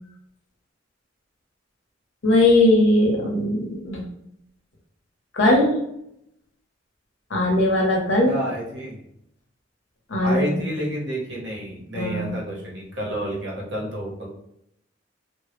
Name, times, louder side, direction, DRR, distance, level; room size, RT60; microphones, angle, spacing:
voice 1, 2.2-4.1 5.3-5.8 7.3-8.3 10.1-10.5 11.9-12.3, left 1 dB, 90° left, -1 dB, 0.7 m, -19 dB
voice 2, 8.2-9.0 10.2-14.3, equal, 65° right, -3 dB, 0.8 m, -30 dB
2.1 x 2.0 x 3.0 m, 0.77 s
head